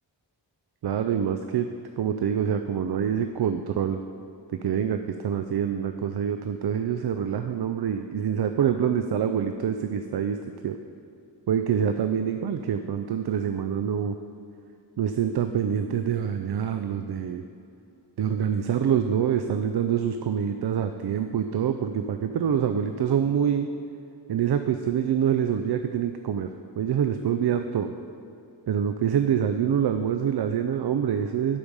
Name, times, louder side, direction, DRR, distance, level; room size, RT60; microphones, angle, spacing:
voice 1, 0.8-1.7 2.0-4.0 4.6-10.4 10.6-10.8 11.5-14.1 15.0-17.4 18.2-23.7 24.3-26.5 26.8-27.9 28.7-31.6, right 8 dB, 60° right, 8 dB, 0.5 m, -26 dB
12.0 x 5.1 x 5.4 m, 2.6 s
wide cardioid pair, 100°, 45 cm